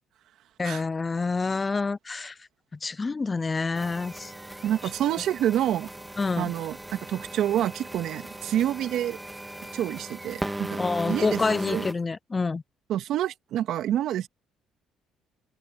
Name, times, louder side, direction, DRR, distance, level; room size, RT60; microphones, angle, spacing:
voice 1, 0.6-2.4 2.8-4.3 6.2-6.5 10.8-12.6, left 4 dB, 25° left, 0.4 m, -27 dB
sound 1, 3.7-11.9, right 1 dB, 10° right, 2.1 m, -37 dB
voice 2, 4.6-5.9 6.4-9.2 9.7-10.8 11.1-11.4 11.7-11.8 12.9-14.3, right 11 dB, 70° right, 2.5 m, -27 dB
cardioid pair, 100°, 0 cm